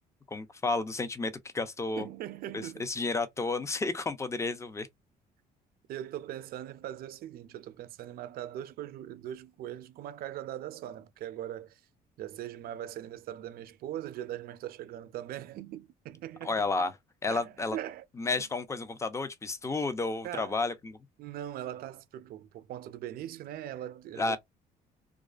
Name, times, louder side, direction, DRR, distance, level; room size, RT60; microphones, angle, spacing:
voice 1, 0.3-2.1 2.5-4.9 16.4-16.9 17.2-17.8 18.2-21.0 24.2-24.4, left 3 dB, 15° left, 0.5 m, -31 dB
voice 2, 2.0-2.9 5.9-11.8 12.2-16.9 17.3-18.0 20.2-20.6 21.2-24.4, right 12 dB, 60° right, 0.4 m, -40 dB
2.4 x 2.3 x 2.3 m
cardioid pair, 110°, 17 cm